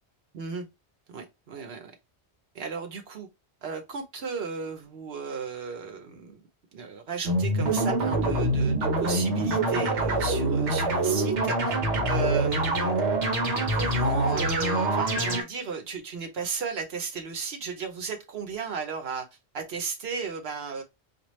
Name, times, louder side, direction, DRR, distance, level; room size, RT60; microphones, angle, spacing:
voice 1, 0.3-0.7 1.1-1.9 2.5-3.3 3.6-6.4 6.7-11.8 12.1-13.1 13.7-19.3 19.5-20.8, right 5 dB, 65° right, 1.1 m, -35 dB
sound 1, 7.2-15.4, right 2 dB, 90° right, 1.4 m, -25 dB
4.4 x 2.3 x 3.1 m
omnidirectional pair, 1.1 m